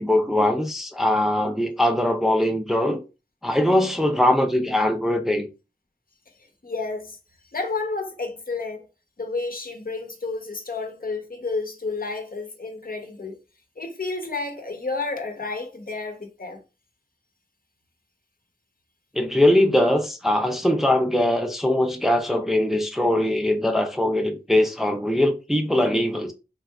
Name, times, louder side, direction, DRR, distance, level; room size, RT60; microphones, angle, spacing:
voice 1, 0.0-3.0 3.4-5.5 19.2-26.3, left 1 dB, ahead, 0.5 m, -21 dB
voice 2, 6.6-7.2 7.5-8.9 9.2-13.4 13.8-16.6, left 3 dB, 60° left, 0.8 m, -31 dB
3.4 x 2.7 x 2.3 m
wide cardioid pair, 50°, 16 cm